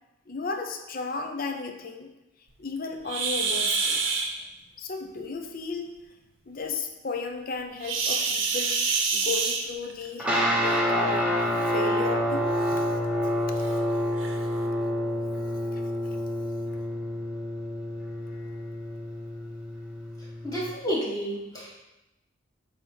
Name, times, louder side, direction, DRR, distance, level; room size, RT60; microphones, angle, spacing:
voice 1, 0.3-2.1 2.6-4.1 4.8-6.0 6.5-8.8 9.1-12.9 13.2-13.3 15.7-15.8, left 4 dB, 45° left, 5 dB, 0.6 m, -34 dB
sound 1, 3.1-4.3 7.8-10.1 11.3-11.5 12.0-12.1 12.7-12.8 13.6-13.7 14.2-14.4, right 4 dB, 75° right, 0.8 m, -26 dB
sound 2, 10.2-20.7, equal, 5° right, 0.8 m, -28 dB
voice 2, 20.4-21.8, equal, 20° left, -6 dB, 1.5 m, -30 dB
7.6 x 2.9 x 5.5 m, 0.95 s
head